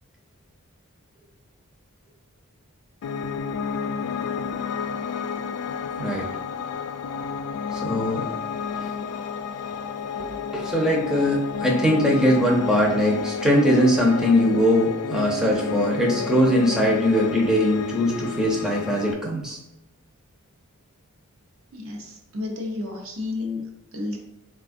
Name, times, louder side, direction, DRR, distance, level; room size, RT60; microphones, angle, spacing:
Piano, 3.0-19.1, left 6 dB, 75° left, 0.3 m, -31 dB
voice 1, 7.7-8.3 8.7-8.8 10.2-19.6, equal, 5° right, -3 dB, 0.6 m, -21 dB
voice 2, 21.7-23.7 23.9-24.2, left 3 dB, 65° right, 1 dB, 0.7 m, -31 dB
4.2 x 2.4 x 2.5 m, 0.92 s
head